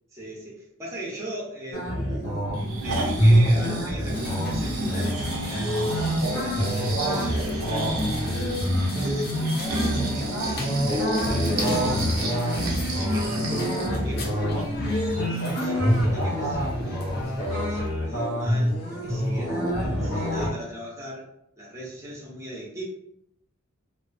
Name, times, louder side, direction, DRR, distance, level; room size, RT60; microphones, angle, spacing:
voice 1, 0.1-2.4 2.8-5.7 6.0-7.9 8.8-11.6 12.4-14.4 15.2-17.2 17.6-21.3 21.6-22.8, right 1 dB, 15° right, -5 dB, 0.5 m, -39 dB
sound 1, 1.7-20.5, equal, 90° left, 0.9 m, -26 dB
Breathing, 2.5-14.0 14.4-14.5, right 1 dB, 75° right, 0.5 m, -30 dB
sound 2, 4.1-17.9, left 2 dB, 45° left, 0.5 m, -42 dB
2.4 x 2.3 x 2.4 m, 0.75 s
head